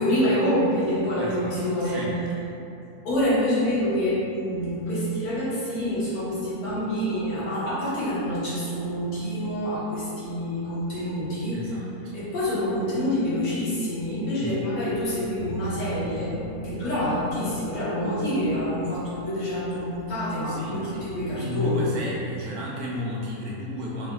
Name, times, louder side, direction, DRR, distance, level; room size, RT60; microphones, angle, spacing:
voice 1, 0.0-2.0 3.0-11.6 12.1-16.3 16.6-21.9, equal, 85° left, -11 dB, 1.7 m, -27 dB
voice 2, 1.2-1.5 1.8-2.4 11.5-12.1 14.4-14.6 20.4-21.1 21.4-24.1, left 2 dB, 70° right, -5 dB, 1.0 m, -33 dB
sound 1, 14.9-22.5, left 1 dB, 45° left, 1.0 m, -41 dB
4.3 x 2.4 x 2.3 m, 2.8 s
omnidirectional pair, 1.8 m